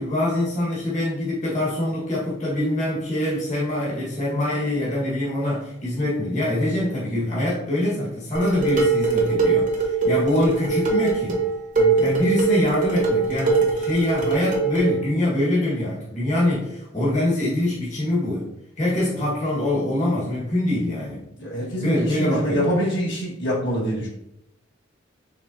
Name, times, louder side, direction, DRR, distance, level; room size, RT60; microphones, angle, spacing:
voice 1, 0.0-11.5 12.0-18.5 18.8-21.2 21.8-22.6, left 1 dB, 40° left, -7 dB, 1.6 m, -24 dB
Dishes pots and pans, 8.3-15.0, right 4 dB, 40° right, 1.1 m, -22 dB
voice 2, 11.8-12.2 21.4-24.1, equal, 60° left, -6 dB, 1.7 m, -25 dB
5.2 x 3.6 x 2.7 m, 0.81 s
head